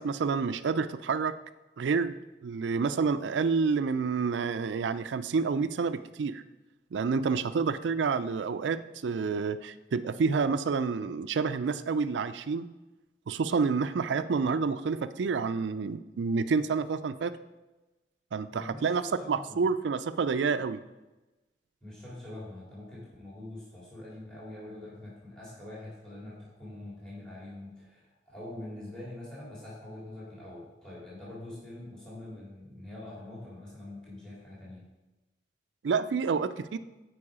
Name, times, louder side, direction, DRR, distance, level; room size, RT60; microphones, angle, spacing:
voice 1, 0.0-1.3 1.8-6.4 6.9-12.7 13.3-17.3 18.3-19.0 19.3-20.8 35.8-36.8, right 5 dB, 90° right, 13 dB, 0.4 m, -29 dB
voice 2, 18.5-19.7 21.8-34.8, left 1 dB, 5° left, -7 dB, 2.4 m, -44 dB
8.7 x 4.7 x 4.9 m, 1.1 s
head